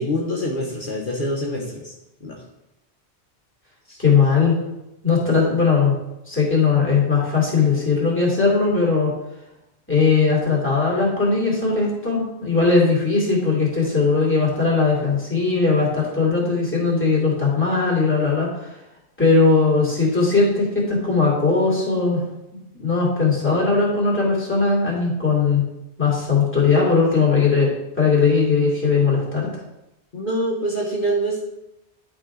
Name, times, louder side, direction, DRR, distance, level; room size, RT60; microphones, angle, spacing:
voice 1, 0.0-1.9 2.2-2.4 3.9-4.0 30.1-31.5, equal, 50° left, -1 dB, 1.2 m, -25 dB
voice 2, 4.0-4.5 5.0-5.9 6.3-9.1 9.9-18.7 19.2-22.2 22.7-25.6 26.0-27.7 28.0-29.5, left 4 dB, 10° left, -5 dB, 2.9 m, -19 dB
11.0 x 4.9 x 3.8 m, 0.90 s
omnidirectional pair, 1.1 m